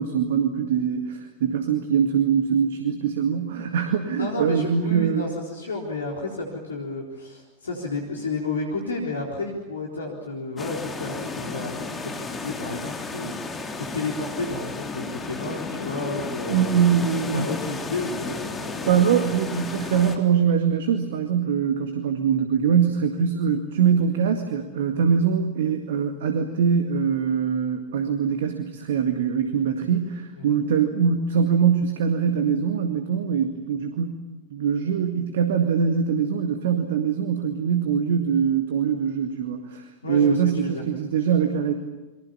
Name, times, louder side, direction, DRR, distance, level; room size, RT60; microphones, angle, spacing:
voice 1, 0.0-5.3 16.5-17.5 18.9-34.2 34.5-41.7, right 7 dB, 60° right, 6 dB, 2.0 m, -23 dB
voice 2, 4.2-16.7 17.3-18.9 30.4-30.6 40.0-40.8, left 2 dB, 70° left, 0 dB, 3.9 m, -31 dB
sound 1, 10.6-20.2, left 3 dB, 15° left, 3.5 m, -33 dB
29.5 x 23.5 x 7.1 m, 1.2 s
figure-of-eight pair, 90°, 0 cm